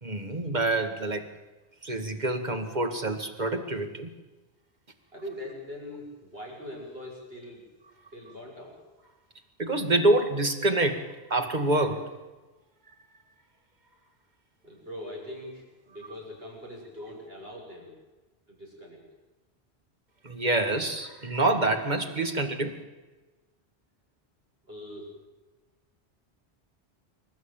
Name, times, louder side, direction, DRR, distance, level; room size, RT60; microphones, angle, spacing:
voice 1, 0.0-1.3 1.8-4.1 9.6-12.1 20.2-22.8, right 2 dB, 45° right, 6 dB, 2.3 m, -26 dB
voice 2, 5.1-7.6 8.1-8.8 14.6-17.9 18.5-19.0 24.7-25.1, left 1 dB, 65° right, -2 dB, 7.7 m, -42 dB
27.5 x 14.0 x 9.1 m, 1.2 s
omnidirectional pair, 1.1 m